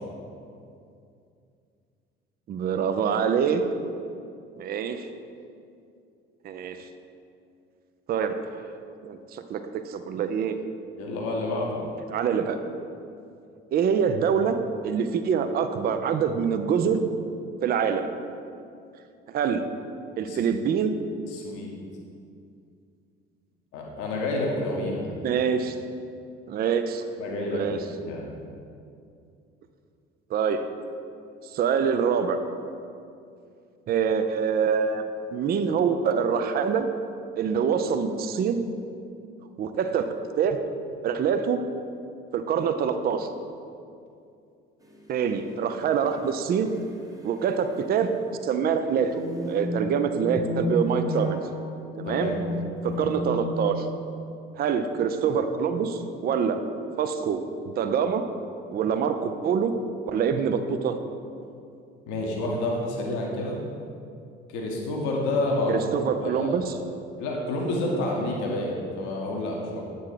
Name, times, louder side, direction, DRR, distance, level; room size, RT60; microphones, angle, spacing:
voice 1, 2.5-3.6 4.6-5.1 6.4-6.8 8.1-8.4 9.0-10.6 12.1-12.6 13.7-14.6 14.8-17.0 17.6-18.1 19.3-19.7 20.2-21.0 25.2-25.8 26.5-27.0 27.5-27.8 30.3-30.7 31.4-32.4 33.9-35.1 35.3-36.9 37.4-38.6 39.6-40.6 41.0-41.6 42.3-43.3 45.1-46.7 47.2-48.1 48.4-51.4 52.0-52.3 52.8-53.9 54.6-56.6 57.0-58.2 58.7-59.7 60.0-61.0 65.7-66.7, right 7 dB, 30° right, 9 dB, 0.4 m, -25 dB
voice 2, 11.0-11.8 20.2-20.4 21.3-21.8 23.7-25.1 27.2-28.3 52.1-52.3 52.8-53.1 62.1-63.6 64.5-65.8 66.2-66.7 67.2-69.8, left 2 dB, 60° left, -1 dB, 1.1 m, -29 dB
sound 1, 44.9-45.0 46.0-46.3 46.6-46.7 47.1-47.4 48.4-54.1, equal, 10° right, 0.9 m, -32 dB
8.1 x 4.2 x 4.9 m, 2.5 s
figure-of-eight pair, 50°, 34 cm